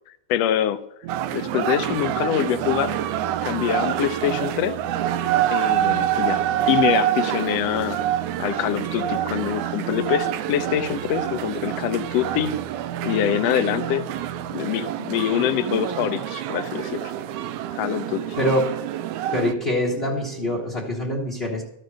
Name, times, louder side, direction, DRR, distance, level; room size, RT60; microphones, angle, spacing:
voice 1, 0.3-0.8 1.3-2.9 3.4-4.8 5.5-8.0 8.4-12.5 13.0-14.0 14.5-17.1 17.8-18.4, left 11 dB, 75° left, 12 dB, 1.6 m, -24 dB
sound 1, 1.0-20.8, right 11 dB, 65° right, 1.7 m, -35 dB
sound 2, 1.1-19.5, right 11 dB, 85° right, 2.0 m, -27 dB
voice 2, 18.4-18.7 19.3-21.6, left 1 dB, 40° left, -2 dB, 0.8 m, -24 dB
13.0 x 6.6 x 6.2 m, 0.83 s
omnidirectional pair, 3.3 m